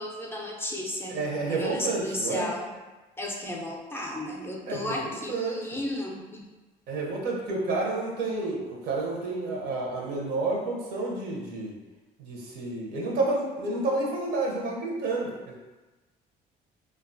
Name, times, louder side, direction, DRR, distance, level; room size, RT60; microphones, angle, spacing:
voice 1, 0.0-1.2 1.5-2.7 3.2-6.4, left 1 dB, 15° left, -2 dB, 0.4 m, -34 dB
voice 2, 1.1-2.5 4.7-5.8 6.9-11.7 12.2-15.6, right 2 dB, 85° right, -2 dB, 0.6 m, -30 dB
2.4 x 2.2 x 2.5 m, 1.2 s
cardioid pair, 110°, 17 cm